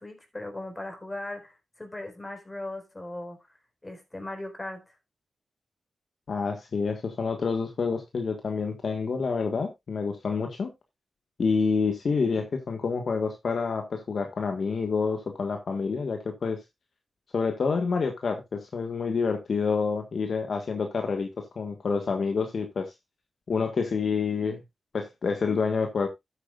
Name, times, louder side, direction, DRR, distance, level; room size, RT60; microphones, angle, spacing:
voice 1, 0.0-3.5 3.8-4.9, left 1 dB, 25° left, 4.3 m, -38 dB
voice 2, 6.3-10.7 11.4-16.6 17.3-22.9 23.5-24.6 24.9-26.1, left 5 dB, 65° left, 1.5 m, -28 dB
13.0 x 8.2 x 2.4 m
cardioid pair, 50°, 0 cm